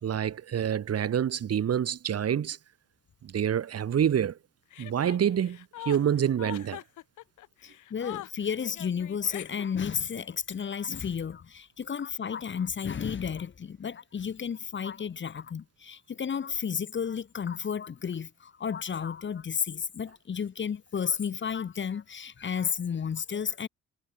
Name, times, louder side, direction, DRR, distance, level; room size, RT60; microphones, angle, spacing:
voice 1, 0.0-2.6 3.2-4.4 4.8-5.6 5.9-6.8, right 9 dB, 55° right, 1.9 m, -27 dB
Chuckle chortle, 4.7-9.9, left 14 dB, 80° left, 1.7 m, -43 dB
voice 2, 7.6-23.7, left 7 dB, 40° left, 1.3 m, -32 dB
cardioid pair, 90°, 30 cm